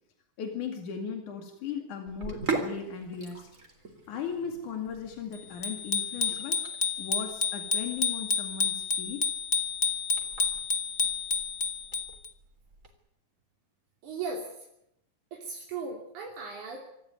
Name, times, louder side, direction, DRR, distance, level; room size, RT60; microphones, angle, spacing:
voice 1, 0.4-3.5 4.1-6.6 7.0-9.2, left 6 dB, 85° left, 4 dB, 3.8 m, -37 dB
Sink (filling or washing), 2.1-12.9, right 3 dB, 25° right, 3.8 m, -41 dB
Bicycle bell, 5.6-12.3, left 5 dB, 35° left, 1.2 m, -30 dB
voice 2, 14.0-14.5 15.3-16.8, right 4 dB, 85° right, -1 dB, 4.6 m, -37 dB
26.0 x 14.5 x 9.5 m, 0.79 s
omnidirectional pair, 3.4 m